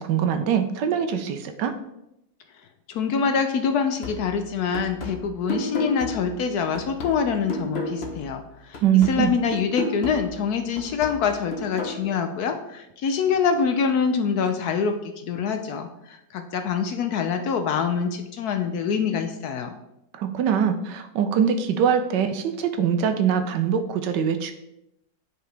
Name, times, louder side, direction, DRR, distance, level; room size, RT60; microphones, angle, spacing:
voice 1, 0.0-1.7 8.8-9.3 20.1-24.5, right 8 dB, 75° right, 8 dB, 1.3 m, -23 dB
voice 2, 2.9-19.7, left 6 dB, 70° left, 7 dB, 1.0 m, -25 dB
sound 1, 4.0-8.5 8.7-12.0, left 1 dB, 40° left, 1.2 m, -33 dB
10.0 x 4.9 x 3.3 m, 0.84 s
omnidirectional pair, 1.9 m